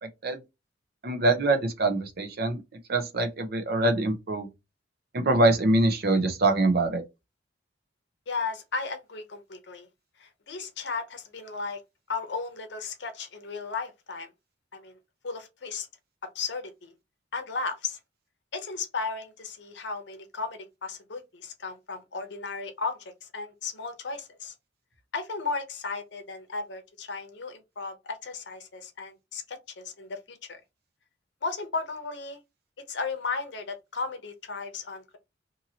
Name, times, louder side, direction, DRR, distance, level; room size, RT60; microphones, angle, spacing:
voice 1, 1.0-2.6 2.9-4.5 5.1-7.0, right 2 dB, 55° right, 0.7 m, -24 dB
voice 2, 8.3-9.9 10.2-11.8 12.1-14.3 14.7-15.0 15.2-15.9 16.2-16.9 17.3-18.0 18.5-24.5 25.1-30.6 31.4-32.4 32.9-35.2, left 4 dB, 65° left, 0.7 m, -35 dB
2.8 x 2.6 x 2.7 m
head